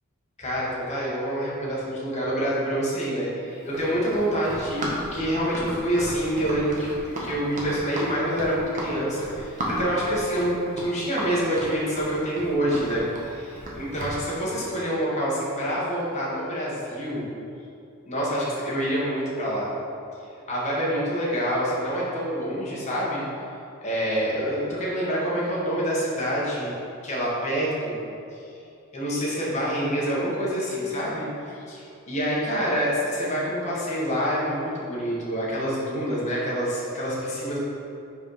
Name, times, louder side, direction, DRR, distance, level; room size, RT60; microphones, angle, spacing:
voice 1, 0.4-6.9 7.2-17.3 18.1-19.7 20.5-23.2 23.8-26.7 27.0-28.0 28.9-31.3 31.5-37.6, equal, 30° left, -7 dB, 1.5 m, -27 dB
Run, 3.6-14.2, right 1 dB, 35° right, 1.0 m, -34 dB
5.4 x 4.2 x 4.9 m, 2.6 s
head